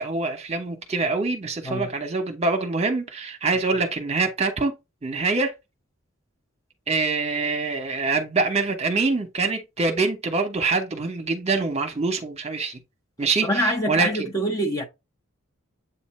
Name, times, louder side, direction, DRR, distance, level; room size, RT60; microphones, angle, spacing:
voice 1, 0.0-4.7 5.0-5.5 6.9-12.8 13.2-14.3, right 3 dB, 30° right, 1.0 m, -25 dB
voice 2, 13.4-14.8, equal, 15° left, 0.9 m, -25 dB
8.0 x 2.8 x 4.2 m
head